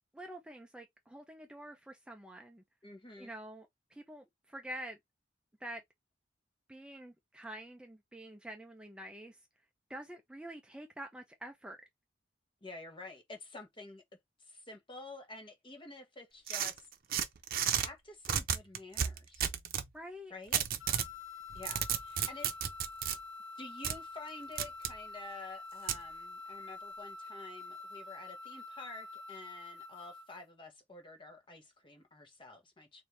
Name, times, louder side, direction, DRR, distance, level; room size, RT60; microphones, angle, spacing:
voice 1, 0.1-2.6 3.2-5.0 5.6-5.8 6.7-9.4 9.9-11.8 19.9-20.3, right 1 dB, 5° right, 0.5 m, -47 dB
voice 2, 2.8-3.3 12.6-14.0 14.4-16.8 17.8-19.5 20.3-20.6 21.5-22.6 23.6-33.0, left 2 dB, 25° left, 1.1 m, -49 dB
sound 1, 16.5-17.9 18.2-19.9 20.5-21.1 21.5-23.2 23.8-24.0 24.6-24.9 25.9-26.0, right 9 dB, 50° right, 0.7 m, -33 dB
sound 2, 20.8-30.4, left 3 dB, 80° left, 0.8 m, -47 dB
4.3 x 2.6 x 3.2 m
head